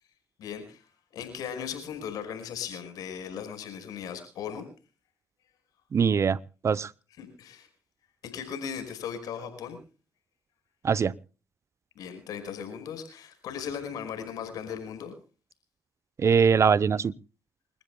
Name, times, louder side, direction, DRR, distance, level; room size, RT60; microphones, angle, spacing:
voice 1, 0.4-0.8 1.1-4.7 7.2-7.7 8.2-9.8 12.0-15.1, left 7 dB, 75° left, 8 dB, 5.2 m, -37 dB
voice 2, 5.9-6.9 10.8-11.1 16.2-17.1, right 6 dB, 50° right, 21 dB, 0.7 m, -22 dB
28.5 x 14.5 x 2.2 m, 0.35 s
supercardioid pair, 50°, 6 cm